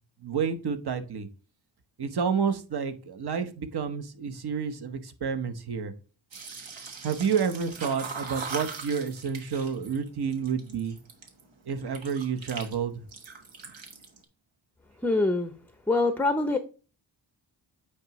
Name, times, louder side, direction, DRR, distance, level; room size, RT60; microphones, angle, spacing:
voice 1, 0.2-1.3 2.0-5.9 7.0-11.0 11.7-13.0, right 6 dB, 55° right, 8 dB, 1.0 m, -29 dB
sound 1, 6.3-11.4 11.8-12.8 13.0-14.2, right 4 dB, 75° right, 1.4 m, -40 dB
voice 2, 15.0-15.5 15.9-16.6, left 2 dB, 5° left, 9 dB, 0.5 m, -24 dB
8.7 x 4.7 x 3.0 m, 0.36 s
cardioid pair, 70°, 46 cm